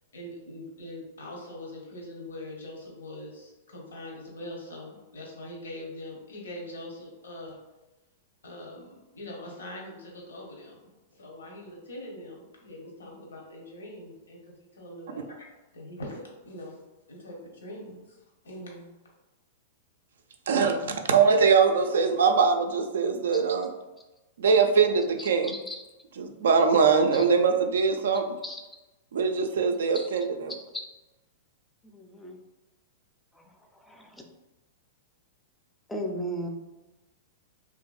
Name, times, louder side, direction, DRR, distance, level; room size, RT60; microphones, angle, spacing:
voice 1, 0.1-7.6 8.4-15.5 15.7-16.8 17.1-18.2 18.4-18.9, left 1 dB, 85° left, -2 dB, 0.7 m, -42 dB
voice 2, 20.5-23.7 24.4-25.6 26.2-28.3 29.1-30.5, right 5 dB, 75° right, 5 dB, 0.3 m, -22 dB
voice 3, 31.8-32.4 33.4-33.5 33.8-34.2 35.9-36.5, equal, 5° left, 2 dB, 0.4 m, -36 dB
2.7 x 2.5 x 2.3 m, 1.1 s
hypercardioid pair, 115°, 0 cm